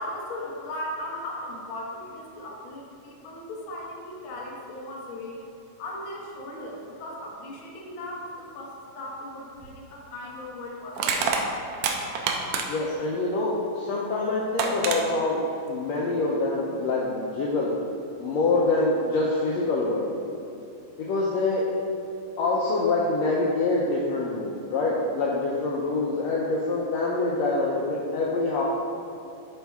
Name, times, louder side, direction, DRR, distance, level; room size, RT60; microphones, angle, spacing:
voice 1, 0.0-5.4 5.8-11.5, left 1 dB, 65° left, -3 dB, 1.3 m, -37 dB
Crushing, 9.6-9.7 11.0-12.9 14.1-14.2 14.6-15.0, right 5 dB, 85° right, 1.6 m, -26 dB
voice 2, 12.7-17.7 18.2-20.1 21.0-21.7 22.4-28.6, left 3 dB, 85° left, -4 dB, 1.5 m, -25 dB
10.5 x 4.4 x 3.5 m, 2.6 s
omnidirectional pair, 3.8 m